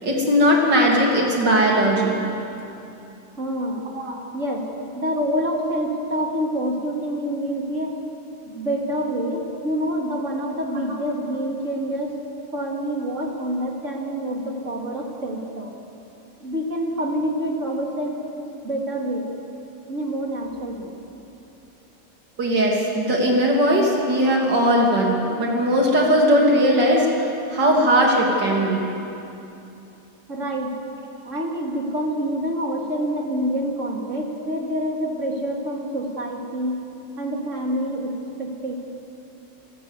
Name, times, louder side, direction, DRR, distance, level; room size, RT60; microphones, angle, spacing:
voice 1, 0.0-2.3 4.0-4.2 22.4-27.1 27.5-28.9, equal, 85° right, -1 dB, 3.5 m, -19 dB
voice 2, 3.4-3.8 4.3-4.7 4.9-8.0 8.4-12.2 12.5-15.7 16.4-19.3 19.9-20.9 30.3-30.8 31.2-36.9 37.2-38.8, equal, 45° right, 0 dB, 3.0 m, -27 dB
28.5 x 13.0 x 8.3 m, 2.8 s
omnidirectional pair, 1.8 m